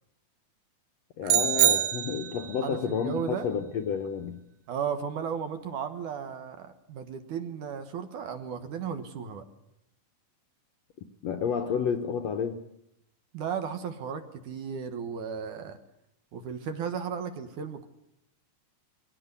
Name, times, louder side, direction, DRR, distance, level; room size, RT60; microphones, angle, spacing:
voice 1, 1.2-4.4 11.2-12.6, left 7 dB, 70° left, 6 dB, 1.7 m, -30 dB
sound 1, 1.3-2.6, right 11 dB, 90° right, 3.3 m, -24 dB
voice 2, 2.6-3.5 4.7-9.4 13.3-15.8 16.3-17.9, right 7 dB, 65° right, 8 dB, 2.6 m, -35 dB
22.0 x 16.5 x 8.2 m, 0.78 s
omnidirectional pair, 4.1 m